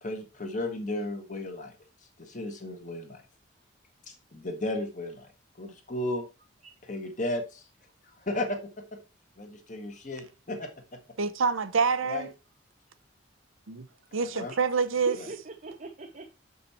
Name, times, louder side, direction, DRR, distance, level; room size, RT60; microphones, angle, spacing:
voice 1, 0.0-1.8 2.2-3.2 4.1-5.3 5.6-6.3 6.9-7.6 8.2-8.6 9.4-10.7 12.0-12.3 14.2-14.5 15.1-15.3, left 1 dB, 40° left, 1.4 m, -34 dB
voice 2, 11.2-12.3 13.7-13.9 14.1-15.2, right 5 dB, 90° right, 0.7 m, -26 dB
voice 3, 15.1-16.3, right 2 dB, 40° right, 0.7 m, -41 dB
6.8 x 5.5 x 4.3 m
head